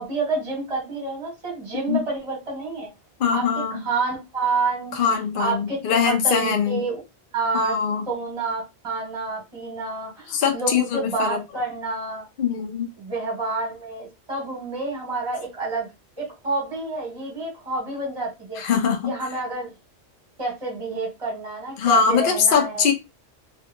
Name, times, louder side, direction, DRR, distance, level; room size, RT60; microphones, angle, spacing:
voice 1, 0.0-2.9 3.3-4.9 5.4-7.0 7.3-7.8 8.1-12.3 13.0-15.9 16.2-18.6 19.1-19.7 20.4-22.9, right 3 dB, 30° right, 1.1 m, -28 dB
voice 2, 3.2-3.8 4.9-6.9 7.5-8.1 10.3-11.4 12.4-12.9 18.6-19.1 21.8-22.9, left 6 dB, 55° left, 0.8 m, -22 dB
2.6 x 2.5 x 2.5 m
omnidirectional pair, 1.2 m